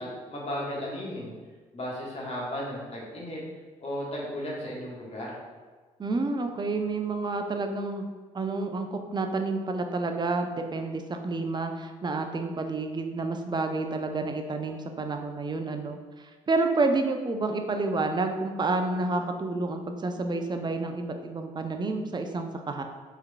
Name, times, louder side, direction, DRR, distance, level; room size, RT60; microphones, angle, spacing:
voice 1, 0.0-1.3 1.7-3.4 3.8-5.4, left 1 dB, 35° left, -4 dB, 1.4 m, -35 dB
voice 2, 6.0-8.1 8.3-22.8, right 3 dB, 25° right, 5 dB, 0.5 m, -29 dB
4.5 x 3.4 x 2.3 m, 1.4 s
figure-of-eight pair, 45°, 18 cm